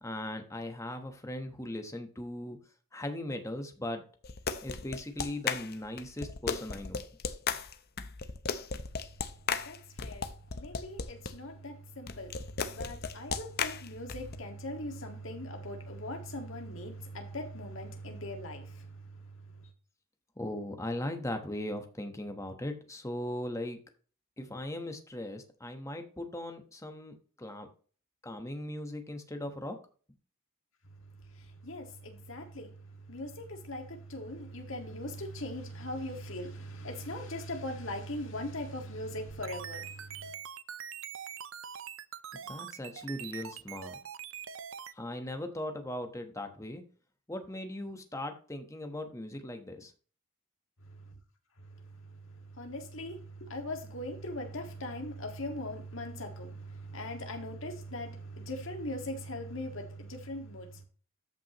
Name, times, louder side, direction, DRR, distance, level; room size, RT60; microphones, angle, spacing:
voice 1, 0.0-2.6 2.9-4.1 4.6-7.0 20.4-23.8 24.4-27.7 28.2-29.8 42.4-44.0 44.9-46.8 47.3-49.9, left 1 dB, 15° left, 1.2 m, -38 dB
sound 1, 4.2-11.3 12.1-14.4, left 5 dB, 45° left, 0.7 m, -35 dB
voice 2, 9.6-19.2 19.6-19.7 31.3-40.3 50.9-51.0 51.8-51.9 52.3-60.8, left 1 dB, 60° left, 1.9 m, -40 dB
sound 2, 39.2-44.9, right 8 dB, 65° right, 0.6 m, -43 dB
13.5 x 5.8 x 3.0 m
head